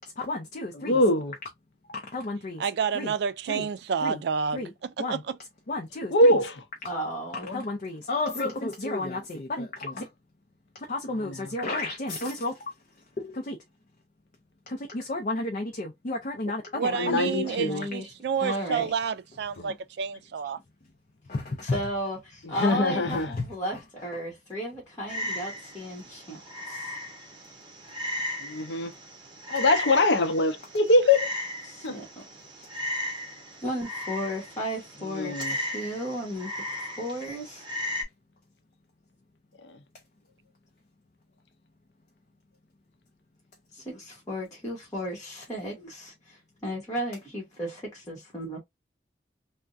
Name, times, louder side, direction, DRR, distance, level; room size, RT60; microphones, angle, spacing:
voice 1, 0.2-1.0 1.9-2.7 2.9-3.1 3.5-3.7 4.0-4.2 4.5-4.7 5.0-5.2 5.7-6.4 7.3-10.1 10.7-12.7 13.2-13.6 14.7-17.2 18.5-18.6 21.3-21.8 23.1-23.5 23.7-24.1, left 2 dB, 50° left, 0.5 m, -32 dB
voice 2, 0.8-1.3 6.1-6.5 7.5-7.6 16.9-17.8 19.6-19.7 22.6-23.3 28.4-28.9 29.5-31.3 31.8-32.0 35.2-35.5, left 2 dB, 80° left, 0.7 m, -22 dB
voice 3, 2.6-5.2 16.7-20.6, right 6 dB, 65° right, 0.3 m, -29 dB
voice 4, 6.8-7.5 17.4-18.1 18.4-18.9 21.6-26.4 26.7-26.9 31.6-32.2 33.6-37.6 43.7-48.6, equal, 20° left, 1.1 m, -34 dB
Frog, 25.1-38.0, left 1 dB, 30° right, 1.1 m, -36 dB
3.4 x 2.2 x 2.5 m
head